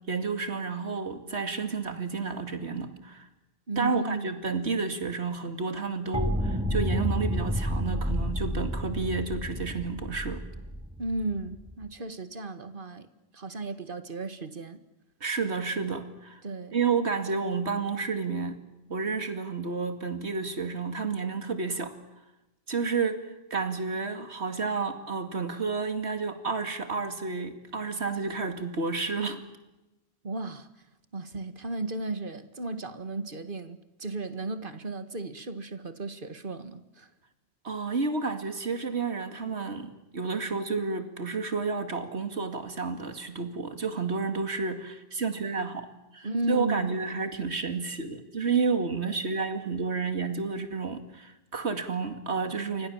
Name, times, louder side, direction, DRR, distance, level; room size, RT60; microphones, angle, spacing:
voice 1, 0.1-3.3 3.8-10.4 15.2-16.4 16.7-18.6 18.9-21.9 22.7-29.4 37.6-45.9 46.1-52.9, right 4 dB, 85° right, 2.6 m, -31 dB
voice 2, 3.7-4.3 11.0-13.1 13.3-14.8 16.4-16.8 30.2-30.7 31.1-37.1 46.2-46.9, right 2 dB, 50° right, 1.9 m, -34 dB
sound 1, 6.1-11.8, equal, 5° right, 2.6 m, -30 dB
29.5 x 24.5 x 7.2 m
omnidirectional pair, 1.1 m